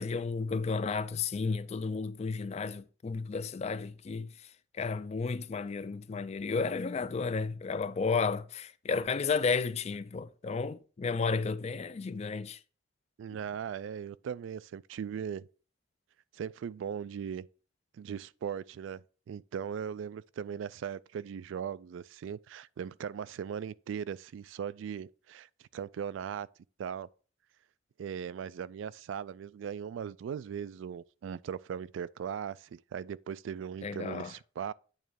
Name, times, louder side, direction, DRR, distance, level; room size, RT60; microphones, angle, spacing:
voice 1, 0.0-12.6 33.8-34.3, left 4 dB, 35° left, 0.3 m, -33 dB
voice 2, 13.2-15.5 16.3-17.4 17.9-19.0 19.3-26.5 26.8-27.1 28.0-34.7, right 7 dB, 70° right, 0.3 m, -39 dB
8.9 x 3.1 x 6.2 m
head